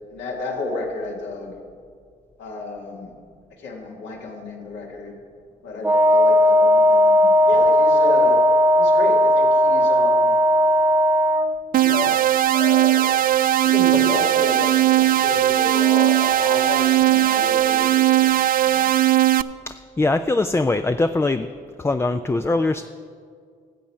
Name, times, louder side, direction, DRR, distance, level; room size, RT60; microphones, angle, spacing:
voice 1, 0.1-1.6 2.4-3.2 3.6-5.2 5.6-8.4 8.8-10.4 11.8-12.2 12.5-13.2 13.6-18.9, left 3 dB, 75° left, -1 dB, 1.9 m, -31 dB
Wind instrument woodwind instrument, 5.8-11.6, equal, 10° right, 0.9 m, -16 dB
sound 1, 11.7-19.4, right 13 dB, 55° right, 0.4 m, -18 dB
voice 2, 19.7-21.5 21.8-22.9, left 2 dB, 15° left, 9 dB, 0.4 m, -22 dB
14.0 x 7.4 x 4.5 m, 2.1 s
supercardioid pair, 55°, 18 cm